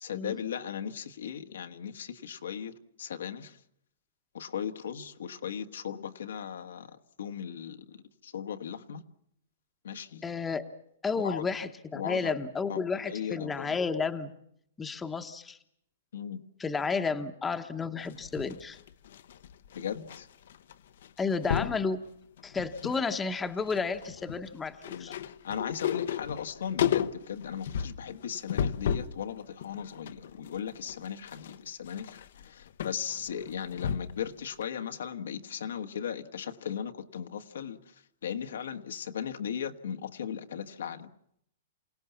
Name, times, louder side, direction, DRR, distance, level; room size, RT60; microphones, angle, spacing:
voice 1, 0.0-3.6 4.3-9.0 9.8-10.2 11.2-11.4 11.9-12.3 12.7-13.8 16.1-16.4 19.7-20.3 24.9-37.8 38.2-41.1, left 8 dB, 85° left, 1.6 m, -37 dB
voice 2, 10.2-10.7 11.0-14.3 14.8-15.6 16.6-18.8 21.2-22.0 22.4-25.1, left 4 dB, 10° left, 1.1 m, -32 dB
sound 1, 18.0-20.2 20.5-20.7 21.0-21.8 22.4-23.0 23.3-29.2 29.6-34.3 34.6-34.7, left 9 dB, 65° left, 0.9 m, -34 dB
28.0 x 17.5 x 7.1 m
hypercardioid pair, 155°, 0 cm